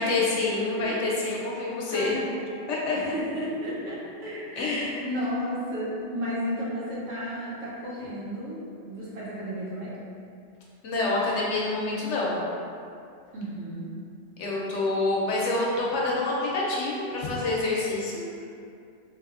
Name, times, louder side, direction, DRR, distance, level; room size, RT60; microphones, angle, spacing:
voice 1, 0.0-2.1 2.7-2.9 4.6-5.1 10.8-12.4 14.4-18.2, left 2 dB, 70° left, -4 dB, 0.9 m, -27 dB
voice 2, 0.6-1.0 1.9-2.5 2.9-4.6 5.0-8.6 8.8-9.9 13.3-13.9, equal, 80° right, -7 dB, 1.2 m, -33 dB
3.4 x 2.6 x 2.4 m, 2.5 s
omnidirectional pair, 1.3 m